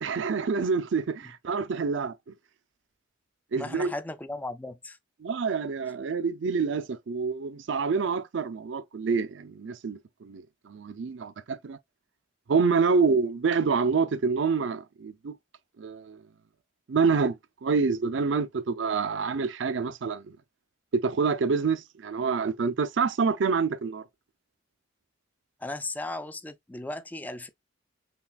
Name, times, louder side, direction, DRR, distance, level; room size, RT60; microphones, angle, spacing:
voice 1, 0.0-2.3 3.5-3.9 5.2-11.8 12.5-15.3 15.8-16.2 16.9-17.4 17.6-20.3 20.9-24.0, right 5 dB, 70° right, 0.5 m, -27 dB
voice 2, 3.6-5.0 25.6-27.5, left 2 dB, 10° left, 0.3 m, -36 dB
5.7 x 2.4 x 2.3 m
head